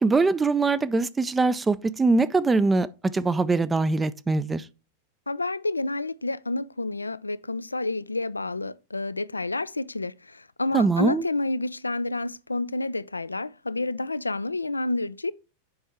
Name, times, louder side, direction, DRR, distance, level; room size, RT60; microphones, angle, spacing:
voice 1, 0.0-4.6 10.7-11.3, right 3 dB, 15° right, 0.4 m, -22 dB
voice 2, 5.3-15.3, left 2 dB, 80° left, 0.3 m, -29 dB
7.9 x 5.3 x 3.5 m
figure-of-eight pair, 90°, 0 cm